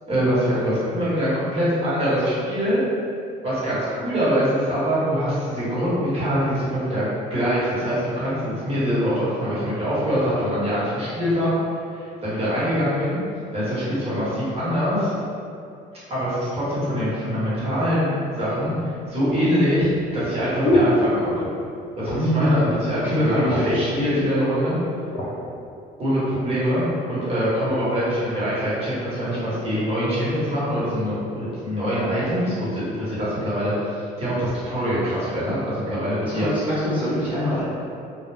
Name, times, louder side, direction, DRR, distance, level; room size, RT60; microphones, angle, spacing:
voice 1, 0.1-2.8 3.4-11.5 11.9-13.2 13.5-15.1 16.1-21.5 22.0-24.8 26.0-36.5, equal, 35° right, -10 dB, 1.2 m, -24 dB
sound 1, 17.6-17.7 18.6-21.7 22.0-22.4 22.8-22.9 23.2-23.9 24.6-25.3 26.0-26.1, left 1 dB, 75° left, 0.6 m, -26 dB
voice 2, 22.1-24.2 36.4-37.6, left 1 dB, 10° right, -13 dB, 1.0 m, -24 dB
2.2 x 2.2 x 3.3 m, 2.5 s
cardioid pair, 110°, 17 cm